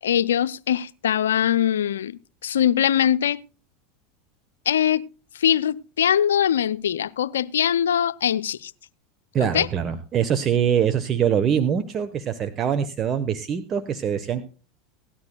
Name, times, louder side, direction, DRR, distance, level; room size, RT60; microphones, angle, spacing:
voice 1, 0.0-3.4 4.7-5.1 5.4-8.7 9.5-9.7, left 9 dB, 80° left, 0.5 m, -22 dB
voice 2, 9.3-14.5, right 8 dB, 35° right, 1.1 m, -23 dB
17.5 x 12.0 x 2.3 m
hypercardioid pair, 85°, 0 cm